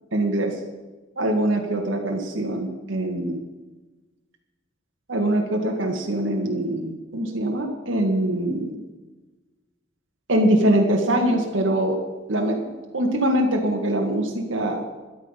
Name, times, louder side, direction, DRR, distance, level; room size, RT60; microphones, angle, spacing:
voice 1, 0.1-0.6 1.2-3.4 5.1-8.8 10.3-12.0 12.3-12.7 12.9-14.8, right 1 dB, 85° right, 1 dB, 1.9 m, -23 dB
13.0 x 11.5 x 5.7 m, 1.2 s
head